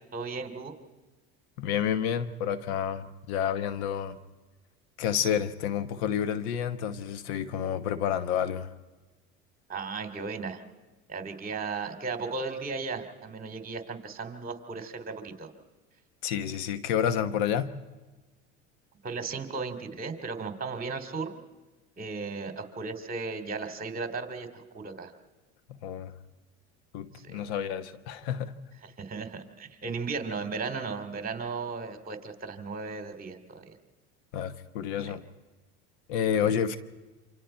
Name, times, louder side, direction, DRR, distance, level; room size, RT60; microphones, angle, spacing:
voice 1, 0.1-0.7 9.7-10.6 11.1-15.5 19.0-21.4 22.0-25.1 27.2-27.4 29.0-33.8 35.0-35.1 36.3-36.5, right 4 dB, 25° right, 2.8 m, -36 dB
voice 2, 1.6-4.2 5.0-8.7 16.2-17.7 25.7-26.1 26.9-28.5 34.3-35.2 36.1-36.8, left 9 dB, 80° left, 1.3 m, -29 dB
28.0 x 26.0 x 4.5 m
supercardioid pair, 95°, 32 cm